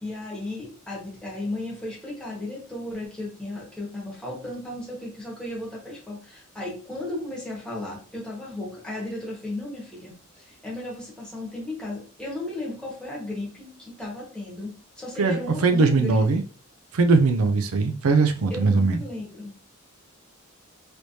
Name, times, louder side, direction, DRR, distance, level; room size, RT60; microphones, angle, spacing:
voice 1, 0.0-16.3 18.5-19.6, left 1 dB, 5° left, 1.3 m, -35 dB
voice 2, 15.2-16.4 16.9-19.0, right 4 dB, 80° right, 0.5 m, -20 dB
3.3 x 3.1 x 2.7 m
head